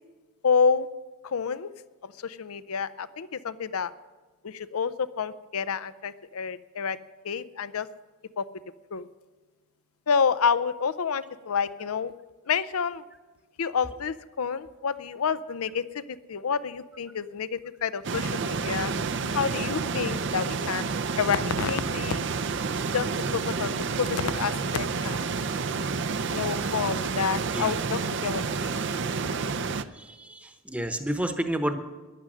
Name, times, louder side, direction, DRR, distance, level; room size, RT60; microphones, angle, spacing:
voice 1, 0.4-0.9 1.2-1.7 2.0-3.9 4.4-7.0 7.2-7.9 8.4-8.5 8.9-9.1 10.1-12.1 12.5-13.0 13.6-16.0 16.3-18.9 19.3-20.9 21.2-22.2 22.9-25.3 26.3-28.7, left 6 dB, 80° left, 15 dB, 0.6 m, -28 dB
sound 1, 18.0-29.8, right 4 dB, 55° right, 0.6 m, -29 dB
voice 2, 29.9-31.8, right 1 dB, 5° right, 6 dB, 0.9 m, -30 dB
15.0 x 11.0 x 6.3 m, 1.3 s
head